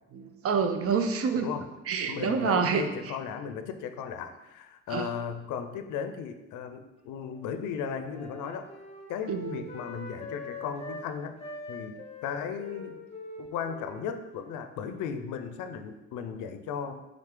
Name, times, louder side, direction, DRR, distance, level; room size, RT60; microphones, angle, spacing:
voice 1, 0.1-1.5 1.9-3.2 4.9-5.1 9.3-9.6, right 5 dB, 50° right, 7 dB, 0.5 m, -28 dB
voice 2, 1.3-1.7 2.1-8.7 9.1-11.4 11.7-13.0 13.4-17.0, left 7 dB, 80° left, 8 dB, 0.5 m, -36 dB
Wind instrument woodwind instrument, 7.1-11.1 11.4-15.9, left 2 dB, 20° left, 0.7 m, -44 dB
3.9 x 3.2 x 3.6 m, 1.0 s
cardioid pair, 90°, 30 cm